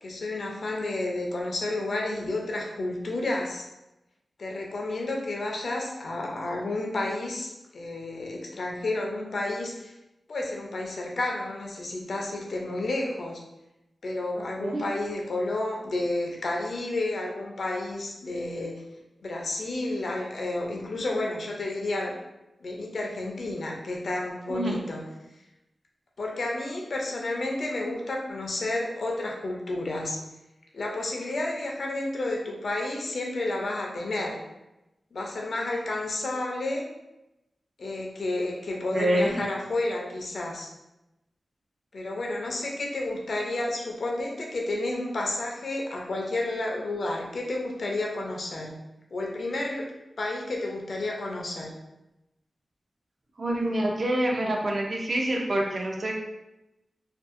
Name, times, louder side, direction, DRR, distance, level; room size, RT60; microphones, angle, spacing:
voice 1, 0.0-3.6 4.4-9.9 10.3-13.4 14.0-18.7 19.2-22.2 22.6-25.1 26.2-30.2 30.7-34.4 35.1-36.9 37.8-40.7 41.9-48.8 49.1-49.9 50.2-51.7, left 2 dB, 65° left, 0 dB, 0.5 m, -31 dB
voice 2, 24.5-24.8 38.9-39.4 53.4-56.1, right 1 dB, 45° right, 0 dB, 0.5 m, -26 dB
2.6 x 2.3 x 2.5 m, 0.94 s
wide cardioid pair, 110°, 0 cm